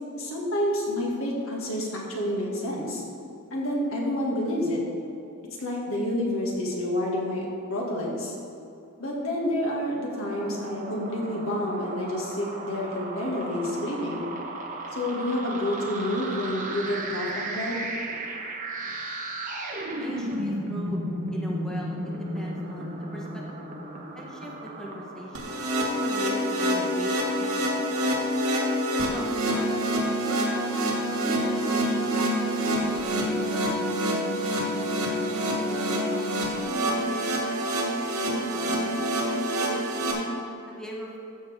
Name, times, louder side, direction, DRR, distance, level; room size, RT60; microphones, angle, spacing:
voice 1, 0.2-3.0 3.5-4.8 5.6-8.3 9.0-14.3 15.0-17.8, left 1 dB, 70° left, -3 dB, 2.1 m, -29 dB
sound 1, 9.9-26.2, right 1 dB, 35° right, 1.1 m, -35 dB
voice 2, 20.0-21.0 21.3-23.7 24.1-25.6 25.9-27.9 28.5-29.7 30.3-32.9 33.5-34.5 35.3-36.6 37.1-40.1 40.7-41.2, equal, 5° left, -3 dB, 1.1 m, -41 dB
sound 2, 25.3-40.1, equal, 90° right, 2.2 m, -26 dB
14.0 x 7.4 x 3.5 m, 2.7 s
head